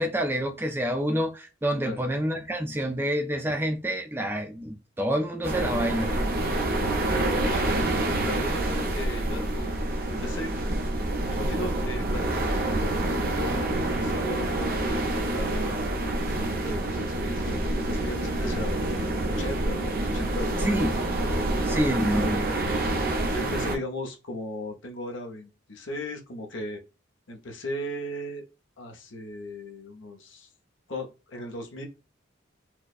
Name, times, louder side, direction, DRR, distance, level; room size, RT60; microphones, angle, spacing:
voice 1, 0.0-6.1 20.6-20.9 21.7-22.4 22.7-22.9, equal, 10° right, 0.4 m, -27 dB
sound 1, 5.4-23.8, right 1 dB, 45° right, 0.8 m, -27 dB
voice 2, 7.4-8.0 8.2-9.8 10.1-10.5 11.3-12.3 13.2-20.9 22.1-22.4 23.3-26.8 27.3-28.4 28.8-30.5 30.9-31.9, left 1 dB, 70° left, 0.9 m, -37 dB
4.6 x 2.2 x 2.4 m
head